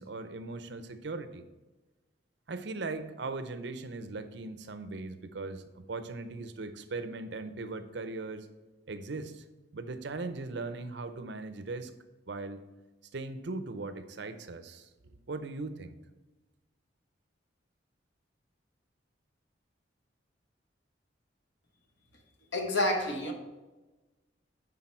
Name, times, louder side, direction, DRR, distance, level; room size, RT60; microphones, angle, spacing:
voice 1, 0.0-1.4 2.5-8.5 8.9-9.4 9.7-11.9 12.3-12.6 13.1-16.0, right 3 dB, 60° right, 10 dB, 0.6 m, -39 dB
voice 2, 22.5-23.3, left 1 dB, 70° left, 3 dB, 1.2 m, -28 dB
10.0 x 4.0 x 4.4 m, 1.2 s
head